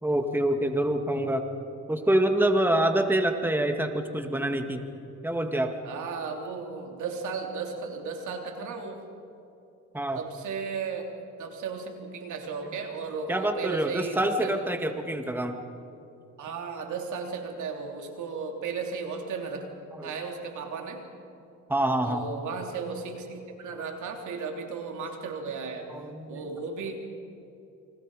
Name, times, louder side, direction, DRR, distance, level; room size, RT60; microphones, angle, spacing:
voice 1, 0.0-1.5 1.9-4.8 5.2-5.8 9.9-10.2 13.3-15.6 19.9-20.1 21.7-22.2 25.9-26.4, right 1 dB, 5° right, 5 dB, 2.0 m, -26 dB
voice 2, 5.8-9.1 10.2-11.1 11.4-14.6 16.4-19.7 20.0-21.1 22.0-25.9 26.3-27.0, right 5 dB, 75° right, 2 dB, 3.4 m, -35 dB
29.5 x 25.0 x 5.0 m, 2.7 s
cardioid pair, 90°, 30 cm